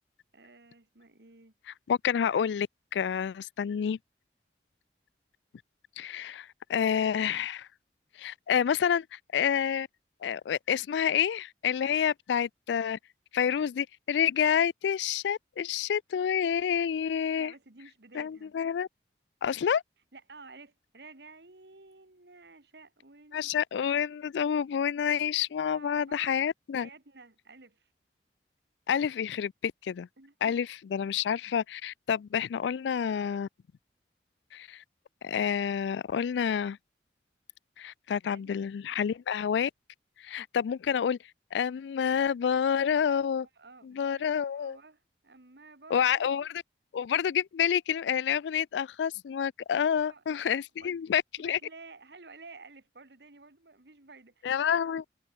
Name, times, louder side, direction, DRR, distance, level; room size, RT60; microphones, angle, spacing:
voice 1, 0.3-1.5 17.4-18.5 20.1-23.6 24.8-25.2 25.6-26.4 26.8-27.9 30.2-30.6 38.3-38.6 43.4-46.4 50.0-51.0 51.4-54.8, right 3 dB, 70° right, 1.9 m, -53 dB
voice 2, 1.9-2.7 2.9-4.0 6.0-7.7 8.2-9.9 10.2-13.0 13.3-17.5 18.1-18.9 19.4-19.8 23.3-26.9 28.9-30.1 30.4-33.5 34.5-34.8 35.2-36.8 37.8-39.7 40.2-41.2 41.5-43.5 43.8-44.8 45.9-46.5 46.9-51.6 54.4-55.0, left 8 dB, 85° left, 0.3 m, -28 dB
head